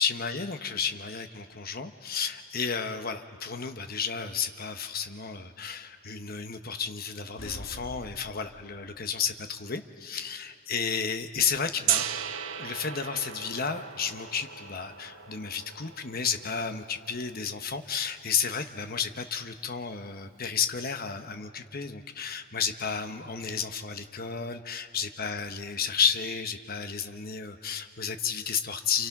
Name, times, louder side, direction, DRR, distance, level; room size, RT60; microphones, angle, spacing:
voice 1, 0.0-12.0 12.6-29.1, left 6 dB, 45° left, 7 dB, 1.1 m, -32 dB
sound 1, 7.4-9.0, left 1 dB, 65° left, 1.4 m, -45 dB
Gong, 11.9-17.8, right 10 dB, 75° right, 0.9 m, -35 dB
28.5 x 28.5 x 6.0 m, 2.2 s
head